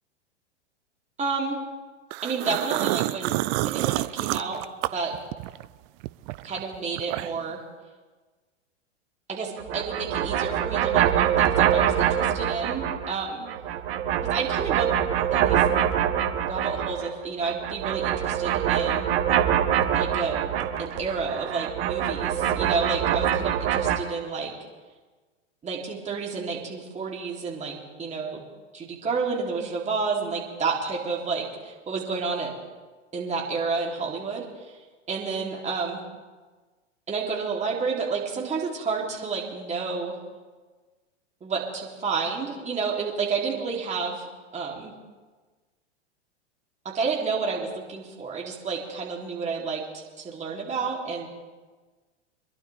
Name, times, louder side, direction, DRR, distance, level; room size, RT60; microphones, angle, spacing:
voice 1, 1.2-1.6 2.2-3.4 3.6-4.6 4.9-5.1 6.4-7.6 9.3-13.5 14.2-15.0 15.3-15.6 16.4-19.1 19.9-20.5 20.8-24.5 25.6-28.4 28.7-32.5 33.1-34.4 35.1-36.0 37.1-40.2 41.4-44.2 44.5-44.9 46.8-51.3, right 4 dB, 20° right, -3 dB, 3.4 m, -30 dB
sound 1, 2.1-5.7 6.0-7.5, right 19 dB, 35° right, 0.4 m, -28 dB
sound 2, 9.6-13.2 13.4-17.1 17.4-24.0, right 10 dB, 55° right, 1.6 m, -24 dB
25.5 x 11.5 x 3.6 m, 1.3 s
hypercardioid pair, 105°, 35 cm